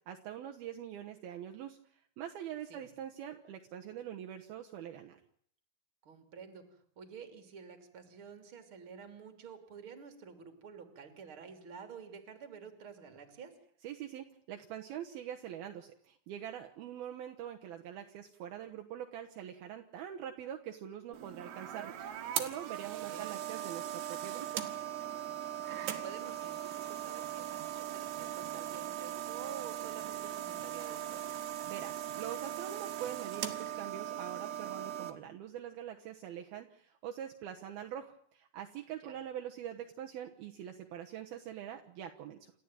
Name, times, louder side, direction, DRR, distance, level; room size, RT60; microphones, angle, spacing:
voice 1, 0.1-1.8 2.2-5.2 13.8-24.6 31.7-42.5, right 10 dB, 70° right, 3 dB, 2.9 m, -44 dB
voice 2, 6.0-6.6 7.0-13.5 23.0-23.3 25.7-31.2 39.0-39.1, right 6 dB, 35° right, 7 dB, 3.4 m, -50 dB
sound 1, 21.1-35.1, right 11 dB, 90° right, 4.1 m, -39 dB
29.0 x 14.0 x 9.0 m, 0.63 s
omnidirectional pair, 4.8 m